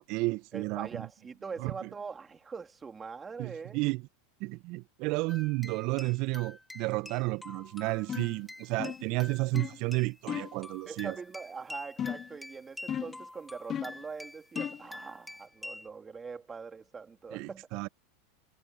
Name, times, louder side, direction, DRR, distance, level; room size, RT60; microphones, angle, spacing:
voice 1, 0.0-1.1 1.6-1.9 3.4-4.0 4.4-11.2 17.3-17.9, right 24 dB, 50° right, 1.7 m, -32 dB
voice 2, 0.5-3.8 10.9-17.7, right 5 dB, 20° right, 4.1 m, -43 dB
sound 1, 5.3-15.9, left 1 dB, 5° left, 3.4 m, -47 dB
sound 2, 8.1-8.4 8.8-9.1 9.5-9.8 10.3-10.6 12.0-12.4 12.9-13.2 13.7-14.0 14.6-14.9, left 9 dB, 30° left, 0.6 m, -36 dB
hypercardioid pair, 90°, 0 cm